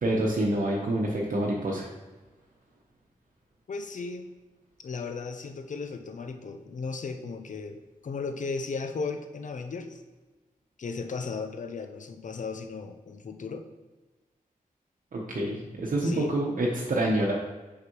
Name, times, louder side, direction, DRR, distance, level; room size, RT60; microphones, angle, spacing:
voice 1, 0.0-1.9 15.1-17.3, right 1 dB, 65° right, -2 dB, 1.0 m, -27 dB
voice 2, 3.7-4.3 4.8-10.0 10.8-13.6 16.0-16.3, left 4 dB, 60° left, 7 dB, 0.6 m, -36 dB
6.3 x 5.8 x 3.0 m, 1.2 s
wide cardioid pair, 70°, 15 cm